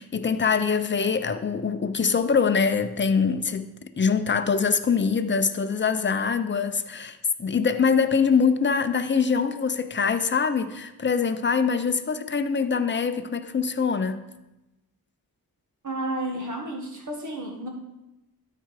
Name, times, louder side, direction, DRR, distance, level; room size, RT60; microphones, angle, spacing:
voice 1, 0.0-14.2, left 5 dB, 30° left, 0.6 m, -24 dB
voice 2, 15.8-17.7, right 1 dB, 50° right, 1.7 m, -31 dB
12.5 x 4.7 x 4.8 m
wide cardioid pair, 110°, 38 cm